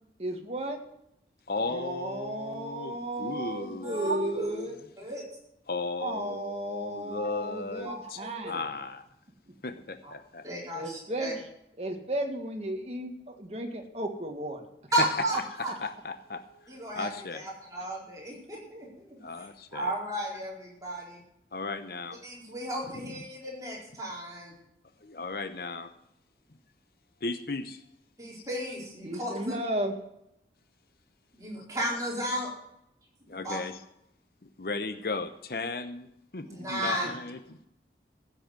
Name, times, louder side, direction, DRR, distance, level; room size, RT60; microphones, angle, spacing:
voice 1, 0.2-0.8 1.6-4.8 6.0-8.6 10.7-11.4 11.8-14.6 15.3-15.7 29.0-29.9 36.8-37.1, right 1 dB, 35° right, 3 dB, 1.8 m, -34 dB
voice 2, 1.5-4.7 5.7-8.2 8.5-9.1 9.6-10.5 15.0-15.1 15.6-17.4 19.2-19.9 21.5-22.2 22.9-23.2 25.0-25.9 27.2-27.8 33.3-33.8 34.4-37.4, left 3 dB, 55° left, 10 dB, 0.8 m, -36 dB
voice 3, 3.8-4.5 5.0-5.2 7.8-8.4 10.4-11.3 14.9-15.7 16.7-21.2 22.2-24.5 28.2-29.5 31.3-32.5 33.3-33.6 36.4-37.1, right 1 dB, 20° right, -4 dB, 4.6 m, -34 dB
15.0 x 7.8 x 7.7 m, 0.80 s
head